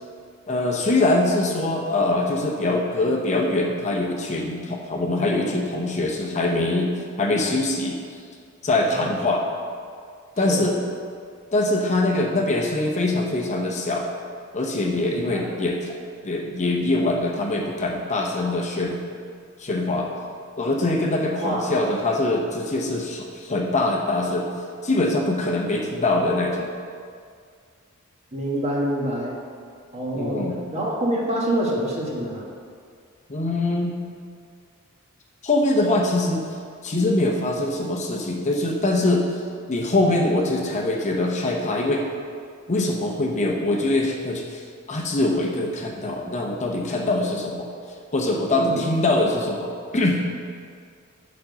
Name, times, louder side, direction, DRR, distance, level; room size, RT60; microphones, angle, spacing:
voice 1, 0.5-6.9 7.2-8.0 8.6-9.4 10.4-10.7 11.5-14.1 14.5-15.9 16.2-19.0 19.6-20.1 20.6-24.5 24.8-26.7 30.1-30.6 33.3-34.0 35.4-36.5 36.8-39.3 39.7-42.0 42.7-47.7 48.1-50.2, left 2 dB, 35° left, 0 dB, 0.8 m, -23 dB
voice 2, 15.1-15.5 21.4-21.7 28.3-29.3 29.9-32.5 48.5-48.8, right 1 dB, 30° right, -3 dB, 1.4 m, -26 dB
7.2 x 5.3 x 6.7 m, 2.2 s
head